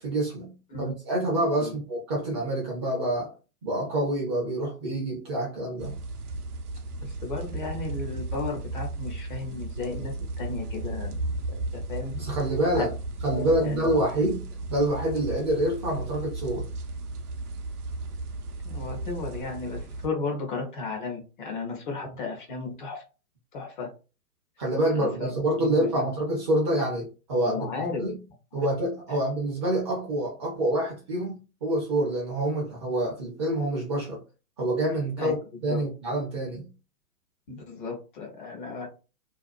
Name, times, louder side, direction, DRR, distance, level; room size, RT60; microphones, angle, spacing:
voice 1, 0.0-3.3 3.6-5.9 12.1-12.9 13.2-16.7 24.6-28.2 28.5-34.2 34.6-36.7, right 1 dB, 20° right, 0.5 m, -27 dB
sound 1, 5.8-20.1, right 2 dB, 80° right, 0.6 m, -35 dB
voice 2, 7.0-11.2 11.7-12.1 12.7-12.9 13.3-13.9 18.6-23.0 23.5-23.9 24.9-25.3 25.6-26.1 27.5-28.0 28.5-28.7 35.2-35.3 35.7-35.8 37.5-38.9, left 4 dB, 35° left, 0.6 m, -34 dB
2.5 x 2.2 x 2.3 m
hypercardioid pair, 130°, 45 cm